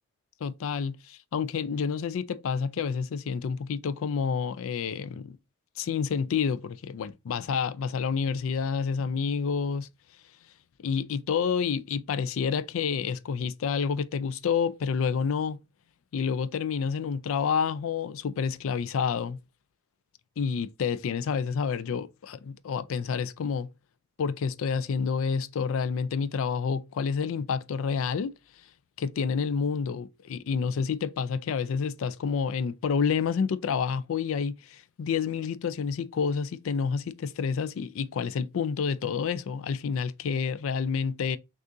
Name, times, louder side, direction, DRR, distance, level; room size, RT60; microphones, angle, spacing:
voice 1, 0.4-5.4 5.8-9.9 10.8-15.6 16.1-19.4 20.4-23.7 24.2-28.3 29.0-41.4, left 6 dB, 65° left, 0.4 m, -29 dB
6.2 x 2.4 x 2.6 m
head